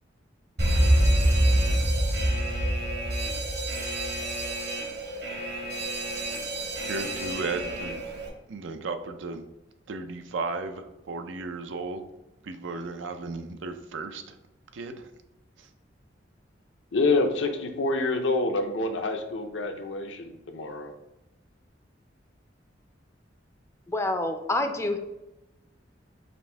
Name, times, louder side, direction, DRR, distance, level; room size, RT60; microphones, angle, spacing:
Alarm, 0.6-8.3, right 1 dB, 65° right, 1.1 m, -26 dB
voice 1, 6.9-8.0 8.5-9.5 9.9-12.1 12.4-14.4 14.7-15.1, right 3 dB, 90° right, 7 dB, 0.5 m, -35 dB
voice 2, 16.9-20.9, left 3 dB, 75° left, 5 dB, 0.6 m, -27 dB
voice 3, 23.9-25.0, left 2 dB, 15° left, 6 dB, 0.4 m, -27 dB
5.2 x 2.6 x 3.3 m, 0.96 s
head